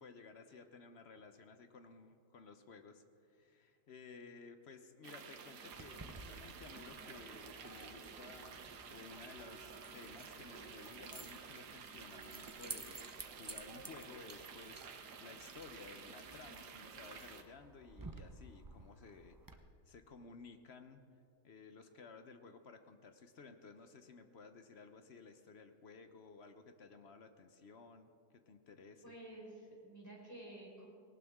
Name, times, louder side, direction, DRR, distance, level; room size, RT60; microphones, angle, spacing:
voice 1, 0.0-8.6 8.9-13.0 13.4-19.4 19.9-21.0 21.4-29.1, left 4 dB, 50° left, 8 dB, 0.9 m, -56 dB
sound 1, 5.0-17.4, right 6 dB, 85° right, 1.6 m, -52 dB
Keys jangling, 5.7-19.5, right 3 dB, 30° right, 0.3 m, -54 dB
voice 2, 29.0-30.9, right 1 dB, 10° left, -4 dB, 4.4 m, -52 dB
19.0 x 18.0 x 3.6 m, 2.3 s
omnidirectional pair, 1.7 m